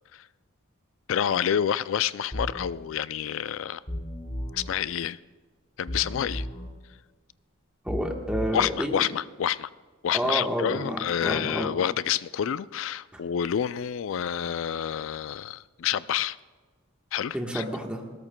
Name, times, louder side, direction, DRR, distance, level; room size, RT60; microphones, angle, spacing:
voice 1, 1.1-3.8 4.5-5.2 5.8-6.5 8.5-9.7 10.0-16.4 17.1-17.6, left 9 dB, 65° left, 17 dB, 0.3 m, -28 dB
sound 1, 2.3-2.7 3.9-4.7 5.9-6.7 7.9-8.7, equal, 25° left, 4.1 m, -34 dB
voice 2, 7.8-8.9 10.1-11.7 17.3-18.0, equal, 5° right, 1 dB, 1.2 m, -29 dB
20.5 x 17.0 x 2.2 m, 1.4 s
head